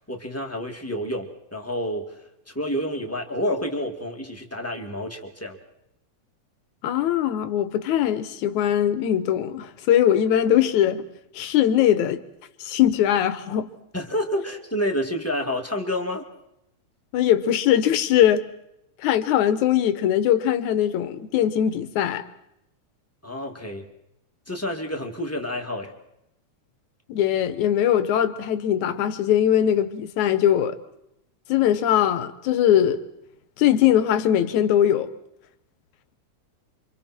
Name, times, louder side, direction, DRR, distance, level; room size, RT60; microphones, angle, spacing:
voice 1, 0.1-2.1 2.5-5.6 13.9-16.3 23.2-23.8 24.5-25.9, equal, 5° left, 2.0 m, -29 dB
voice 2, 6.8-11.1 11.3-12.2 12.6-13.7 17.1-18.5 19.0-22.2 27.1-30.8 31.5-33.0 33.6-35.1, left 10 dB, 75° left, 2.5 m, -21 dB
29.5 x 26.0 x 4.4 m
omnidirectional pair, 3.5 m